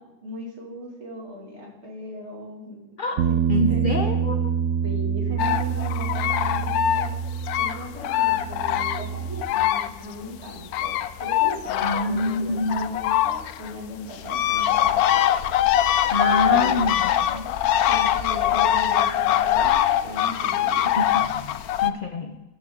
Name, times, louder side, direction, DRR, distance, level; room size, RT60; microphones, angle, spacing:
voice 1, 0.0-2.8 3.1-3.4 3.7-4.3 4.8-7.2 7.6-15.3 16.2-16.8 17.9-20.9, equal, 50° right, -2 dB, 2.6 m, -38 dB
Bass guitar, 3.2-9.4, right 7 dB, 65° right, 0.7 m, -26 dB
voice 2, 3.5-4.3 11.8-12.9 16.1-17.5 21.0-22.4, left 2 dB, 50° left, 6 dB, 0.7 m, -26 dB
sound 1, 5.4-10.1 10.4-21.9, left 11 dB, 85° left, 1.1 m, -23 dB
12.5 x 8.5 x 3.7 m, 1.1 s
omnidirectional pair, 1.5 m